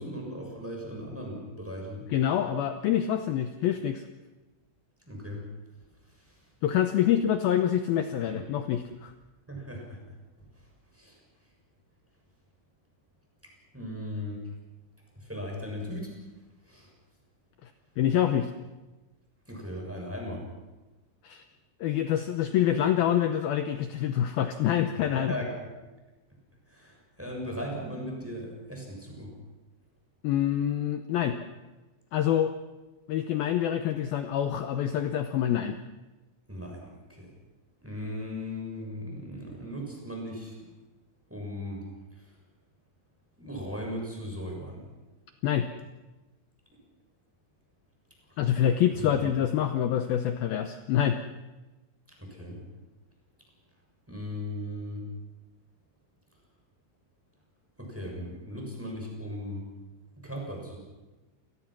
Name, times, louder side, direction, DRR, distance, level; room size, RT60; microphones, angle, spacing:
voice 1, 0.0-2.0 5.1-5.5 6.1-6.4 8.2-8.5 9.5-10.0 10.9-11.2 13.7-14.5 15.1-16.2 16.7-16.9 19.5-20.4 25.1-25.7 26.7-29.3 36.5-37.3 37.8-40.5 41.3-41.8 42.1-42.3 43.4-44.9 48.3-48.4 49.0-49.3 52.2-52.6 54.1-55.1 57.8-59.7 60.2-60.8, equal, 5° right, -1 dB, 6.4 m, -38 dB
voice 2, 2.1-4.0 6.6-9.1 17.6-17.7 18.0-18.5 21.2-21.4 21.8-25.3 30.2-31.4 32.1-32.5 33.1-35.8 45.4-45.7 48.4-51.2, left 10 dB, 85° left, 8 dB, 2.1 m, -26 dB
29.0 x 19.5 x 6.1 m, 1.1 s
omnidirectional pair, 5.5 m